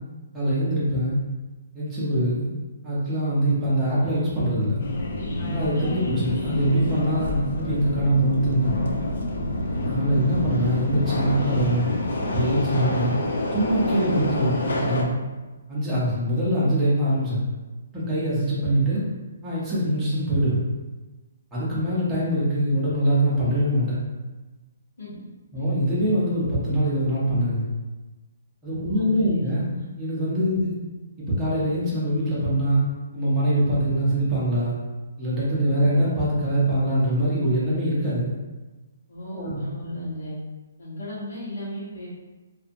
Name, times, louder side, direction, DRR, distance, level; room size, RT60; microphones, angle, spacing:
voice 1, 0.3-1.2 1.7-2.5 2.8-4.8 5.5-8.8 9.8-11.9 12.3-13.1 13.5-15.2 15.7-17.4 17.9-19.0 19.4-20.7 21.5-24.0 25.5-27.6 28.6-30.7 31.2-32.8 33.1-34.7 35.2-38.3 39.3-39.6, right 1 dB, 5° right, -11 dB, 0.6 m, -23 dB
Subway metro underground, 4.8-15.0, left 2 dB, 60° left, 0.4 m, -27 dB
voice 2, 28.8-29.9 30.5-30.6 39.1-40.3 40.8-42.1, left 1 dB, 75° left, -12 dB, 1.0 m, -35 dB
2.7 x 2.5 x 2.6 m, 1.2 s
hypercardioid pair, 175°, 0 cm